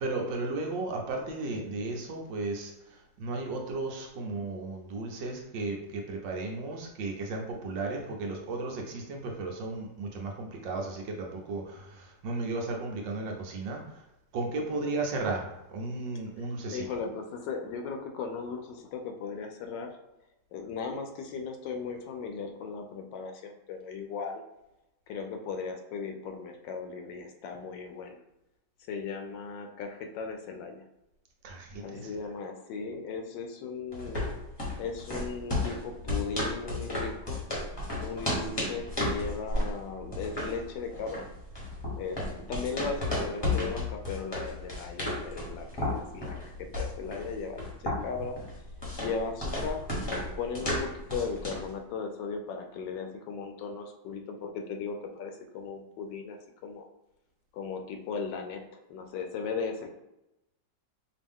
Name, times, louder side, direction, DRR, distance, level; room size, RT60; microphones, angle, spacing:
voice 1, 0.0-14.0 14.3-16.8 31.4-32.1, right 3 dB, 75° right, 1 dB, 1.5 m, -35 dB
voice 2, 14.7-15.0 16.4-19.9 20.5-24.4 25.1-28.2 28.9-30.8 31.8-34.2 34.8-37.4 37.9-41.2 42.0-48.4 49.0-49.8 50.4-56.4 56.6-56.9 57.5-59.9, left 5 dB, 80° left, 5 dB, 1.3 m, -37 dB
sound 1, 33.9-51.7, left 1 dB, 20° left, 0.9 m, -33 dB
5.2 x 2.6 x 3.6 m, 0.92 s
omnidirectional pair, 2.0 m